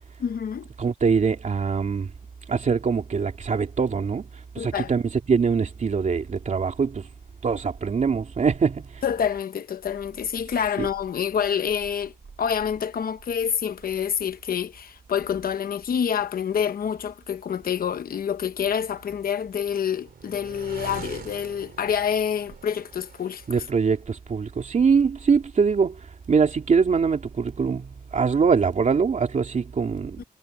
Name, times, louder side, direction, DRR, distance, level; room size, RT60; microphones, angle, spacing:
voice 1, 0.2-0.7 4.6-4.9 9.0-12.1 12.4-23.4 30.2-30.3, left 8 dB, 75° left, 0.9 m, -27 dB
voice 2, 0.8-2.1 2.5-7.1 7.4-9.0 10.8-10.9 23.5-30.2, right 5 dB, 50° right, 2.7 m, -23 dB
sound 1, 19.2-24.0, right 7 dB, 85° right, 3.1 m, -43 dB
wide cardioid pair, 135°, 15 cm